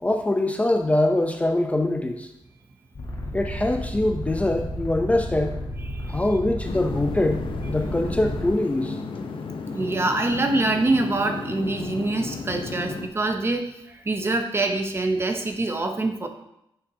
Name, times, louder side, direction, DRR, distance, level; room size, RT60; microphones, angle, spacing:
voice 1, 0.0-2.3 3.3-5.6 6.1-9.0, left 1 dB, 15° left, 4 dB, 0.4 m, -23 dB
sound 1, 2.9-8.5, equal, 45° left, 1.3 m, -32 dB
voice 2, 5.9-6.2 9.7-16.3, right 2 dB, 25° right, 5 dB, 0.6 m, -25 dB
sound 2, 6.6-13.1, left 4 dB, 60° left, 0.7 m, -34 dB
7.0 x 6.7 x 2.7 m, 0.81 s
wide cardioid pair, 140°, 10 cm